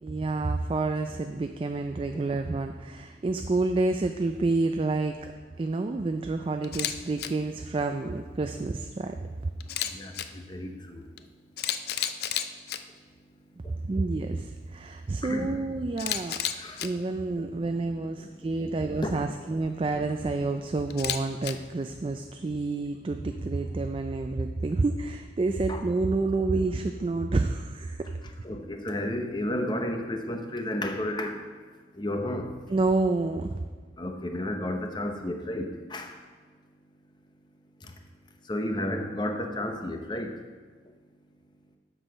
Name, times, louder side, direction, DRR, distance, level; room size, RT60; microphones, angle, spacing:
voice 1, 0.0-5.3 5.6-9.1 13.6-16.4 16.8-28.1 32.7-33.6, right 3 dB, 30° right, 6 dB, 0.3 m, -29 dB
Camera, 6.6-6.9 7.2-7.3 9.6-10.2 11.2-11.3 11.6-12.8 16.0-16.9 20.9-21.5, left 10 dB, 60° left, 0.4 m, -30 dB
voice 2, 9.9-11.0 15.2-15.6 16.5-16.8 18.0-18.3 19.0-19.1 25.7-25.8 28.4-31.4 32.0-32.5 34.0-36.1 37.8-37.9 38.5-40.3, left 1 dB, 25° left, 4 dB, 0.8 m, -32 dB
7.8 x 6.2 x 5.5 m, 1.5 s
head